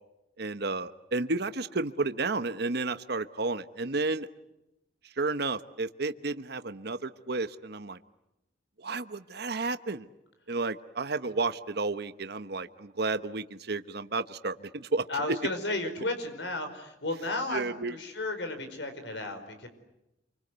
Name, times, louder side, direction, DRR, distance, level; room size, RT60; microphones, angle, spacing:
voice 1, 0.4-4.3 5.2-8.0 8.8-10.1 10.5-15.0 17.5-17.9, right 3 dB, 65° right, 10 dB, 1.1 m, -32 dB
voice 2, 15.1-19.7, left 2 dB, 85° left, 8 dB, 4.8 m, -33 dB
28.5 x 24.5 x 8.1 m, 0.90 s
head